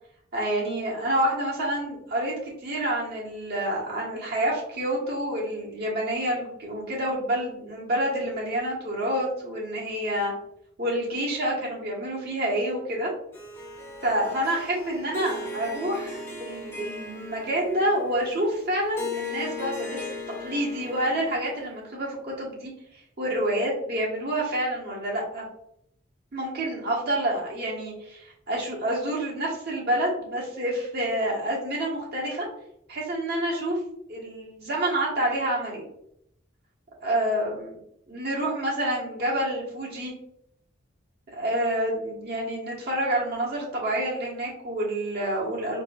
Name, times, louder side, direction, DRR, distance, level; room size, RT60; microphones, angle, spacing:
voice 1, 0.3-10.3 10.8-13.1 14.0-20.0 20.4-22.7 23.2-25.4 26.3-32.5 32.9-33.8 34.1-35.8 37.0-37.8 38.1-40.1 41.3-45.8, right 1 dB, 55° right, -4 dB, 1.3 m, -28 dB
Harp, 13.3-21.8, left 3 dB, 10° left, 0.7 m, -38 dB
4.7 x 2.7 x 2.4 m, 0.74 s
head